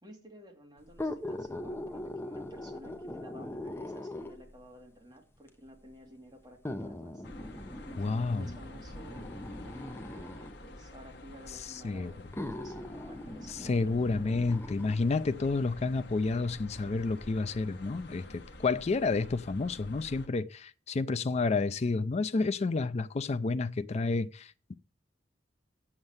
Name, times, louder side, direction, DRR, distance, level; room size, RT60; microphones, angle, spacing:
voice 1, 0.0-7.2 7.9-15.0, right 1 dB, 25° right, 2.5 m, -53 dB
sound 1, 0.9-4.6 5.5-5.6 6.6-10.6 11.6-11.7 12.3-15.0 15.4-15.5, left 1 dB, 15° left, 0.8 m, -40 dB
sound 2, 7.2-20.3, left 1 dB, 65° left, 1.2 m, -49 dB
voice 2, 8.0-8.5 11.8-12.1 13.6-24.7, left 3 dB, 35° left, 0.4 m, -30 dB
sound 3, 12.7-17.8, equal, 80° right, 4.7 m, -57 dB
7.7 x 7.3 x 7.9 m
head